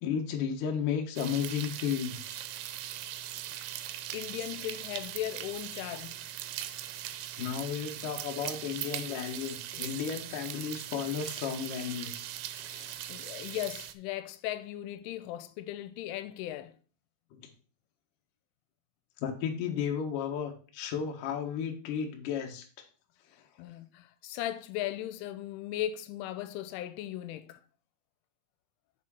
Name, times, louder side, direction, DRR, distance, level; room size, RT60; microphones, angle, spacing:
voice 1, 0.0-2.4 7.4-12.3 12.6-12.9 17.3-17.4 19.2-22.7, left 8 dB, 70° left, 2.0 m, -34 dB
sound 1, 1.2-13.9, right 12 dB, 85° right, 3.2 m, -40 dB
voice 2, 3.8-6.2 12.9-16.7 23.6-27.6, left 13 dB, 85° left, 3.1 m, -37 dB
6.7 x 6.1 x 4.7 m
omnidirectional pair, 5.6 m